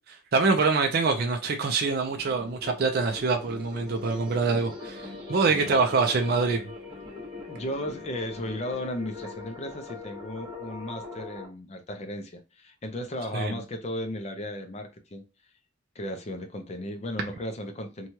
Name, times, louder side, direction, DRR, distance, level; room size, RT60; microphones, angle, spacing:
voice 1, 0.1-5.0 5.3-6.6 13.3-13.5, right 4 dB, 50° right, 0.4 m, -25 dB
sound 1, 1.9-11.5, left 3 dB, 25° right, 1.0 m, -41 dB
voice 2, 5.5-5.8 7.5-15.2 16.0-18.1, left 1 dB, 35° left, 0.4 m, -35 dB
3.0 x 2.3 x 2.7 m
head